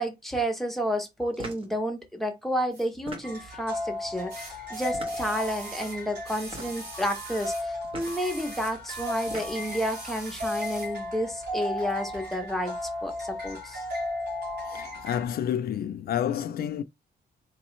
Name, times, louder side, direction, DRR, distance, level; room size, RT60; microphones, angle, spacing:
voice 1, 0.0-12.8 13.0-13.8, equal, ahead, 0.9 m, -31 dB
sound 1, 1.3-1.7 2.9-3.6 4.8-5.4 6.4-6.9 7.8-8.2 9.1-9.8, right 2 dB, 30° right, 1.0 m, -41 dB
sound 2, 2.7-2.9 4.3-7.7 8.0-11.0 11.9-12.0, right 2 dB, 65° right, 2.1 m, -43 dB
sound 3, 3.2-15.3, left 1 dB, 90° right, 2.5 m, -35 dB
voice 2, 14.7-16.8, left 10 dB, 65° left, 0.4 m, -29 dB
4.2 x 3.0 x 3.0 m
wide cardioid pair, 160°, 17 cm